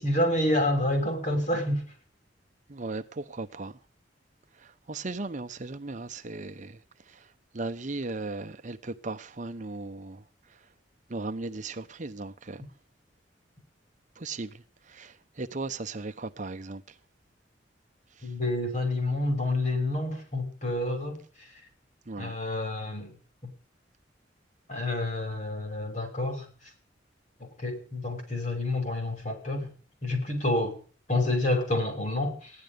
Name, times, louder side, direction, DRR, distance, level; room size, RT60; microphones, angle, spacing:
voice 1, 0.0-1.8 18.2-21.2 22.2-23.1 24.7-26.5 27.4-29.7 30.0-30.8 31.1-32.5, left 1 dB, 40° left, 5.8 m, -28 dB
voice 2, 2.7-3.7 4.9-6.8 7.5-10.2 11.1-12.6 14.2-14.5 14.9-16.8 22.1-22.3, right 3 dB, 40° right, 0.9 m, -36 dB
16.5 x 11.5 x 5.2 m
head